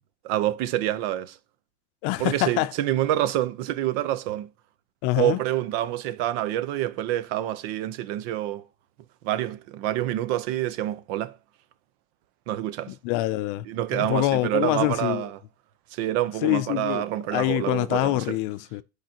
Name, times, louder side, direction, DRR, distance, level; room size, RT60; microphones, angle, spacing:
voice 1, 0.2-1.4 2.2-4.5 5.2-8.6 9.2-11.4 12.5-12.9 13.6-15.4 15.9-18.4, right 13 dB, 70° right, 0.8 m, -27 dB
voice 2, 2.0-2.7 5.0-5.4 12.9-13.6 13.9-15.2 16.4-17.0 17.3-18.8, left 17 dB, 60° left, 0.5 m, -25 dB
10.5 x 4.9 x 2.9 m
cardioid pair, 180°, 32 cm